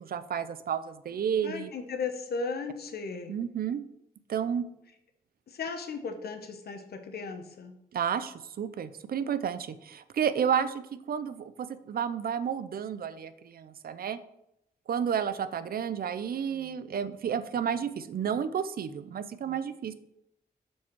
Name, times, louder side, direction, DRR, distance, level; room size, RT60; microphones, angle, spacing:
voice 1, 0.0-1.7 3.3-3.8 4.3-4.7 7.9-14.2 14.9-19.9, right 8 dB, 70° right, 13 dB, 0.5 m, -31 dB
voice 2, 1.4-3.3 5.5-7.7, left 4 dB, 80° left, 6 dB, 1.0 m, -36 dB
7.2 x 4.6 x 4.6 m, 0.80 s
cardioid pair, 90°, 16 cm